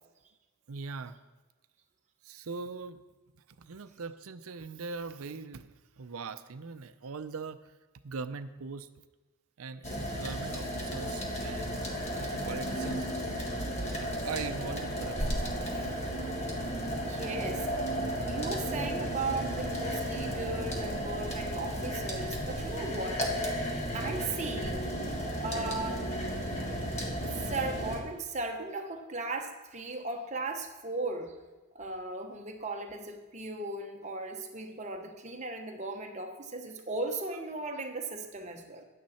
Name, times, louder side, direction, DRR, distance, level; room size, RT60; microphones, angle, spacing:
voice 1, 0.7-1.2 2.2-3.0 3.6-5.7 6.0-7.6 8.0-8.9 9.6-13.1 14.2-16.0, right 4 dB, 75° right, 12 dB, 0.6 m, -41 dB
sound 1, 9.8-28.0, equal, 30° left, 1.6 m, -34 dB
voice 2, 16.9-17.7 18.3-23.3 23.9-24.9 25.4-26.0 27.2-31.4 31.7-38.8, right 3 dB, 30° right, 3 dB, 1.0 m, -37 dB
10.5 x 9.4 x 4.3 m, 1.2 s
head